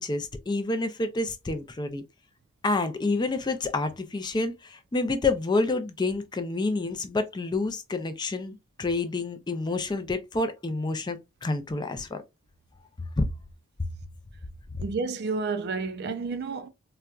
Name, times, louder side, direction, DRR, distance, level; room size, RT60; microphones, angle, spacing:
voice 1, 0.0-2.0 2.6-12.2 13.2-13.3, left 3 dB, 20° left, 0.4 m, -28 dB
voice 2, 14.8-16.7, right 4 dB, 50° right, 0.4 m, -30 dB
4.0 x 2.2 x 2.3 m
head